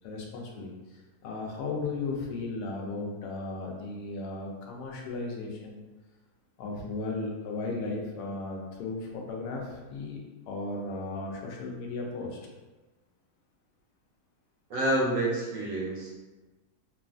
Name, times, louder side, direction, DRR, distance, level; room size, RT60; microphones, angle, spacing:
voice 1, 0.0-0.7 1.2-5.8 6.6-10.2 10.5-12.4, left 3 dB, 80° left, -1 dB, 1.1 m, -35 dB
voice 2, 14.7-16.1, right 1 dB, 70° right, -4 dB, 0.8 m, -28 dB
3.0 x 2.3 x 2.4 m, 1.2 s
omnidirectional pair, 1.7 m